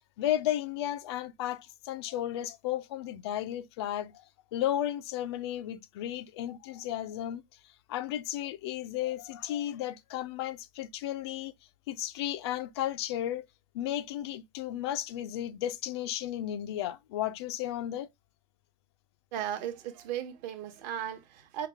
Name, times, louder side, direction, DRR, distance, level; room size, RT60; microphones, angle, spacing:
voice 1, 0.2-4.1 4.5-7.4 7.9-11.5 11.9-13.5 13.7-18.1, left 12 dB, 25° left, 0.3 m, -34 dB
voice 2, 19.3-21.7, right 10 dB, 40° right, 1.0 m, -36 dB
5.6 x 2.3 x 3.3 m
hypercardioid pair, 135°, 33 cm